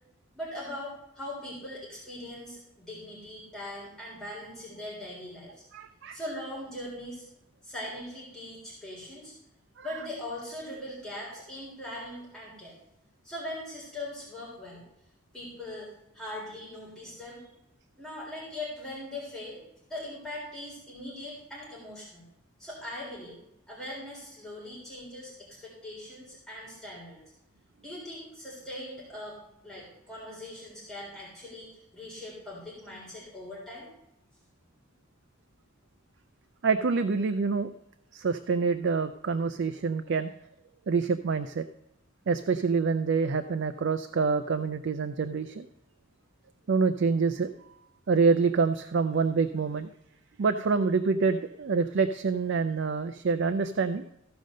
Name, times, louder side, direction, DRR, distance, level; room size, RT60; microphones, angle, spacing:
voice 1, 0.3-5.6 6.1-7.2 7.6-9.3 9.8-12.7 13.2-14.9 15.3-17.4 18.0-19.6 19.9-22.3 22.6-23.4 23.7-27.2 27.8-29.4 29.6-33.9, left 1 dB, 5° left, -6 dB, 3.7 m, -40 dB
voice 2, 5.7-6.2 9.8-9.9 36.6-37.7 38.1-40.3 40.9-41.7 42.3-45.7 46.7-47.5 48.1-49.9 50.4-54.0, right 4 dB, 60° right, 10 dB, 0.4 m, -26 dB
14.5 x 5.2 x 6.4 m, 0.86 s
head